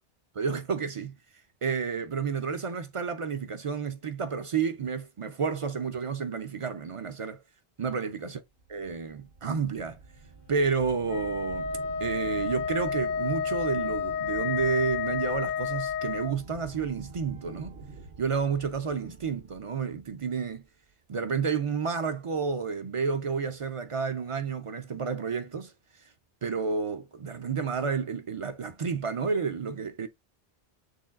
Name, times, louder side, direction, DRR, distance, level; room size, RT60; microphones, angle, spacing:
voice 1, 0.3-1.1 1.6-7.4 7.8-8.4 8.7-10.0 10.5-11.7 12.0-17.8 18.2-20.6 21.1-25.7 26.0-26.1 26.4-30.1, right 5 dB, 50° right, 0.4 m, -30 dB
sound 1, 8.6-20.7, right 4 dB, 75° right, 1.1 m, -47 dB
Wind instrument woodwind instrument, 11.0-16.4, left 7 dB, 60° left, 0.8 m, -31 dB
6.7 x 3.1 x 2.4 m
omnidirectional pair, 1.0 m